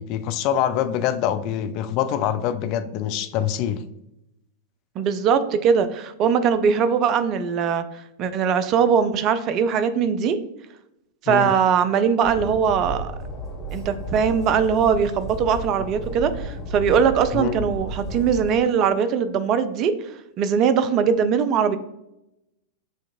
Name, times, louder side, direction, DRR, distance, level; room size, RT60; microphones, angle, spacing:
voice 1, 0.0-3.8 11.3-11.5 17.3-17.6, left 10 dB, 40° left, 10 dB, 0.3 m, -25 dB
voice 2, 5.0-7.8 8.2-10.4 11.2-13.1 13.7-19.9 20.4-21.8, right 7 dB, 35° right, 11 dB, 0.4 m, -21 dB
Train, 12.2-18.5, right 1 dB, 15° left, 1.3 m, -33 dB
7.0 x 2.9 x 2.4 m, 0.86 s
figure-of-eight pair, 90°, 0 cm